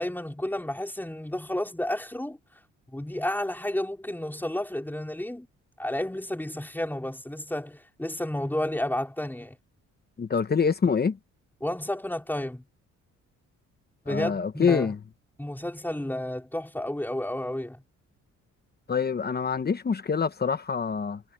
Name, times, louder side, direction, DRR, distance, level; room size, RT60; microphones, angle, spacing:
voice 1, 0.0-2.4 2.9-5.5 5.8-9.6 11.6-12.6 14.0-14.9 15.4-17.8, left 1 dB, 5° left, 5.0 m, -31 dB
voice 2, 10.2-11.2 14.1-15.0 18.9-21.2, left 6 dB, 35° left, 1.1 m, -25 dB
cardioid pair, 90°, 30 cm